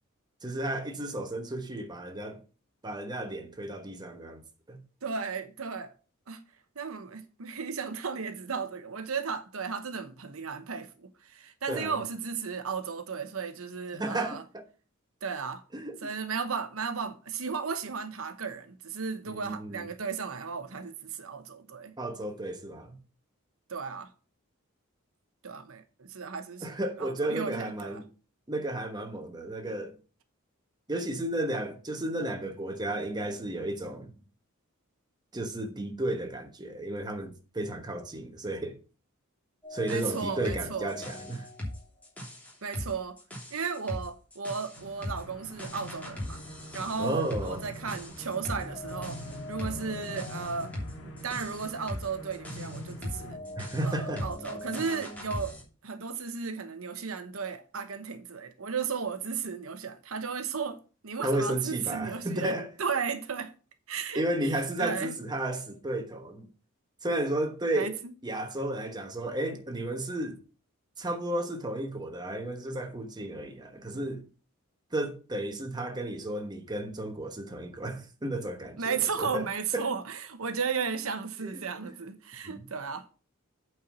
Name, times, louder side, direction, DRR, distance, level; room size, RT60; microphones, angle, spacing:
voice 1, 0.4-2.4 2.8-4.4 4.7-4.8 11.7-12.0 13.9-14.6 15.7-16.0 19.3-19.8 22.0-23.0 26.6-28.0 28.5-29.9 30.9-34.1 35.3-38.8 39.7-41.5 47.0-47.6 53.6-54.3 61.2-62.7 64.1-66.5 67.0-68.0 68.2-70.4 71.0-74.2 74.9-79.9 81.4-81.9 82.4-82.6, right 1 dB, 20° right, 1.1 m, -33 dB
voice 2, 5.0-5.9 6.3-6.4 6.8-14.4 15.2-15.6 16.0-21.9 23.7-24.1 25.4-26.7 27.0-28.0 39.9-40.9 42.6-43.2 43.5-46.4 46.7-49.2 49.5-50.7 51.0-53.4 53.8-55.5 55.8-60.8 61.0-63.5 63.9-64.2 64.8-65.1 67.8-68.1 78.8-83.1, right 5 dB, 70° right, 0.9 m, -34 dB
sound 1, 39.6-55.6, left 1 dB, 5° left, 2.9 m, -40 dB
sound 2, 44.7-53.4, left 2 dB, 65° left, 1.8 m, -46 dB
8.6 x 4.6 x 6.0 m
head